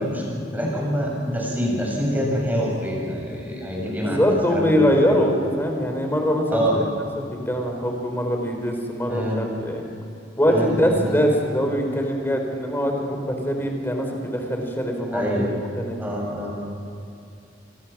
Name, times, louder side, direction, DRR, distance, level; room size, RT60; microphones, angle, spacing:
voice 1, 0.0-4.9 6.5-6.8 9.1-9.5 10.5-11.1 15.1-15.5 16.0-16.5, equal, 10° right, -3 dB, 7.9 m, -26 dB
voice 2, 3.8-6.9 7.2-9.8 10.4-15.5 15.8-16.0, equal, 15° left, 3 dB, 4.3 m, -23 dB
27.0 x 25.0 x 6.2 m, 2.5 s
head